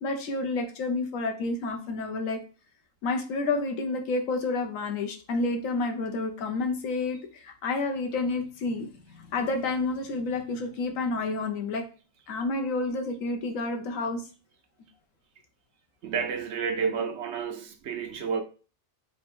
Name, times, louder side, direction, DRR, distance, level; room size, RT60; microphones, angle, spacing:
voice 1, 0.0-2.4 3.0-11.8 12.3-14.2, left 3 dB, 75° left, 1.2 m, -29 dB
voice 2, 16.0-18.4, right 6 dB, 65° right, 0.8 m, -30 dB
3.5 x 2.7 x 4.3 m
omnidirectional pair, 1.4 m